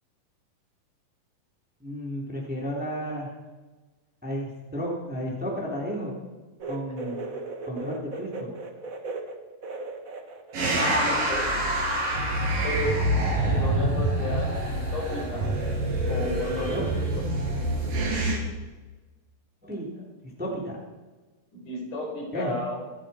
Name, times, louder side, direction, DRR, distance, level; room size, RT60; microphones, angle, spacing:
voice 1, 1.8-3.3 4.2-6.2 6.6-7.3 7.6-8.5 16.5-16.8 19.6-19.9 20.4-20.8 22.3-22.6, equal, 5° right, -3 dB, 3.2 m, -33 dB
sound 1, 6.6-11.7 11.9-12.9 13.2-13.3 14.3-14.4, right 3 dB, 55° right, 0.9 m, -38 dB
sound 2, 10.5-18.4, right 1 dB, 75° right, 6.4 m, -26 dB
voice 2, 11.0-11.7 12.6-12.9 13.4-15.5 16.1-16.8 21.5-22.8, left 1 dB, 65° left, -2 dB, 6.1 m, -33 dB
26.0 x 10.0 x 4.5 m, 1.2 s
omnidirectional pair, 4.0 m